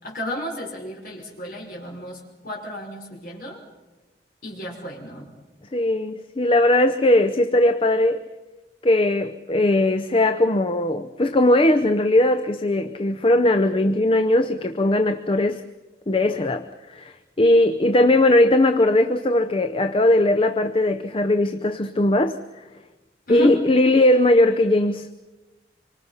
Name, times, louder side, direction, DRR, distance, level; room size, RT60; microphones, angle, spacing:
voice 1, 0.0-3.6 4.4-5.3 23.3-23.5, equal, 55° left, 5.3 m, -33 dB
voice 2, 5.7-8.2 8.8-15.6 16.1-16.7 16.9-22.3 23.3-25.1, left 1 dB, 30° left, 0.7 m, -19 dB
26.0 x 24.5 x 5.7 m
head